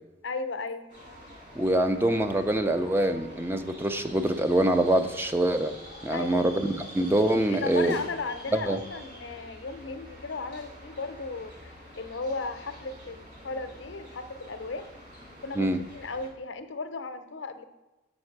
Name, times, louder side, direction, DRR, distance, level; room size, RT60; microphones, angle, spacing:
voice 1, 0.2-0.9 6.1-6.6 7.5-14.9 15.4-17.6, left 3 dB, 70° left, 9 dB, 0.7 m, -36 dB
sound 1, 0.9-16.3, equal, 40° right, 3.3 m, -47 dB
voice 2, 1.6-5.8 6.0-8.0 8.5-8.8 15.6-15.8, right 1 dB, 10° right, 8 dB, 0.5 m, -25 dB
7.5 x 5.4 x 5.9 m, 1.1 s
head